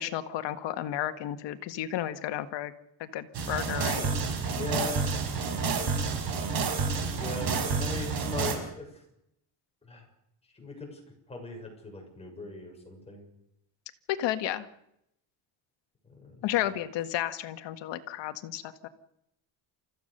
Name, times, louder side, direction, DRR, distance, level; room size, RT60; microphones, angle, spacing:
voice 1, 0.0-2.7 3.0-4.1 14.2-14.7 16.4-18.9, left 12 dB, 75° left, 9 dB, 1.8 m, -32 dB
sound 1, 3.3-8.6, right 5 dB, 55° right, 5.0 m, -29 dB
voice 2, 4.5-5.1 7.2-9.0 9.9-10.0 10.5-11.0 11.3-13.2 16.1-16.4, left 3 dB, 15° left, 1 dB, 6.6 m, -39 dB
29.5 x 14.5 x 6.7 m, 0.79 s
cardioid pair, 160°, 43 cm